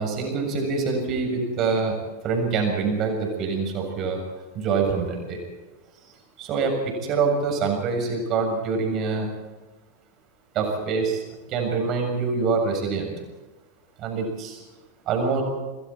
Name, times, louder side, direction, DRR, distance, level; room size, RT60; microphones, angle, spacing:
voice 1, 0.0-2.0 2.2-4.2 4.6-5.4 6.4-9.3 10.6-11.2 11.5-13.1 14.0-14.6 15.1-15.4, right 4 dB, 35° right, 2 dB, 7.3 m, -25 dB
28.5 x 21.0 x 4.5 m, 1.2 s
figure-of-eight pair, 90°, 0 cm